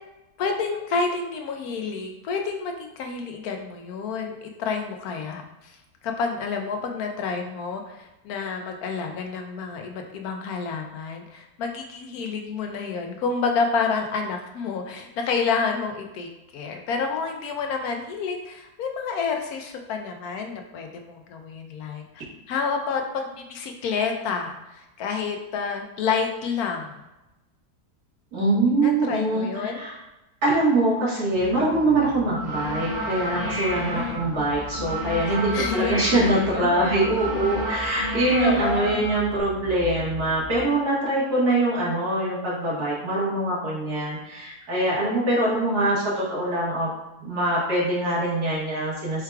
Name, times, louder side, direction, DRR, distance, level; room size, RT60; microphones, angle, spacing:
voice 1, 0.4-5.8 6.0-27.0 28.8-29.8 33.7-34.2 35.3-37.0 38.3-39.1, left 5 dB, 75° left, 3 dB, 1.1 m, -29 dB
voice 2, 28.3-29.5 29.8-29.9 30.4-46.9 47.2-49.2, right 2 dB, 90° right, -7 dB, 2.0 m, -23 dB
sound 1, 31.3-40.6, left 1 dB, 60° left, 1.2 m, -40 dB
sound 2, 32.3-39.4, equal, 35° right, 0.7 m, -31 dB
4.6 x 2.3 x 4.6 m, 0.97 s
omnidirectional pair, 1.6 m